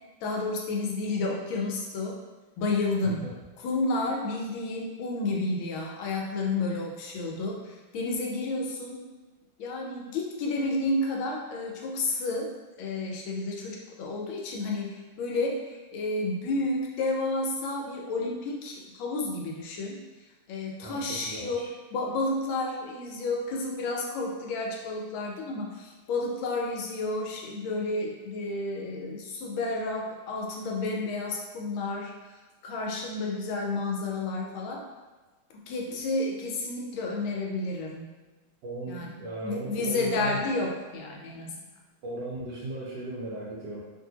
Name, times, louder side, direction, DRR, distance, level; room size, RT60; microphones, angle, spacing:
voice 1, 0.2-2.1 2.6-3.2 3.6-9.0 9.6-12.5 12.8-20.0 20.5-21.7 21.9-32.4 32.6-34.8 35.7-38.1 38.9-39.1 39.4-41.6, left 2 dB, 80° left, -1 dB, 1.3 m, -31 dB
voice 2, 3.0-3.3 20.8-21.7 38.6-40.4 42.0-43.8, right 1 dB, 70° right, -5 dB, 1.1 m, -36 dB
3.1 x 2.6 x 2.7 m, 1.2 s
omnidirectional pair, 2.3 m